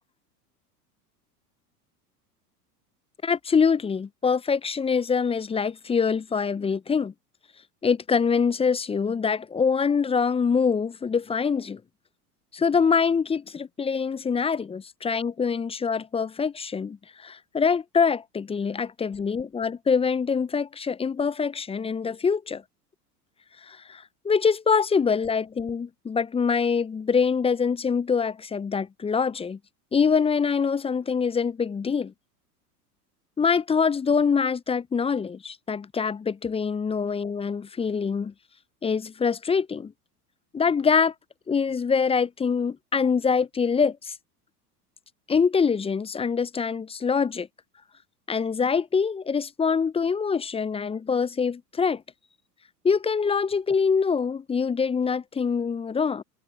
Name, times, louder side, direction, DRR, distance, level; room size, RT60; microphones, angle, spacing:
voice 1, 3.2-7.1 7.8-11.8 12.5-22.6 23.6-29.6 29.9-32.1 33.4-38.3 38.8-39.9 40.5-41.1 41.5-44.1 45.3-47.5 48.3-52.0 52.8-56.2, left 5 dB, 10° left, 0.7 m, -24 dB
figure-of-eight pair, 85°, 47 cm